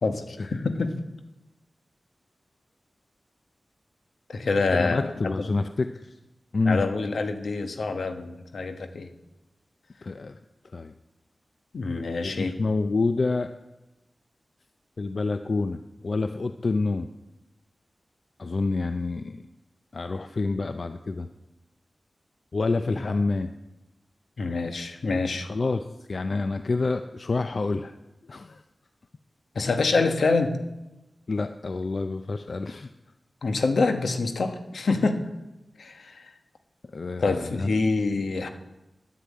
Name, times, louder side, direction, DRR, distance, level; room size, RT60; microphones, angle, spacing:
voice 1, 0.0-0.9 4.3-5.3 6.7-9.1 11.7-12.5 23.0-23.1 24.4-25.5 29.5-30.5 33.4-35.2 35.8-36.1 37.2-38.5, left 3 dB, 85° left, 7 dB, 1.2 m, -26 dB
voice 2, 4.7-6.1 6.5-6.9 10.0-10.4 10.7-10.9 12.2-13.5 15.0-17.1 18.4-19.4 19.9-21.3 22.5-23.5 25.4-27.9 28.3-28.6 31.3-32.9 36.9-37.8, left 3 dB, 60° left, 9 dB, 0.5 m, -28 dB
10.0 x 9.4 x 8.4 m, 1.0 s
wide cardioid pair, 60°, 0 cm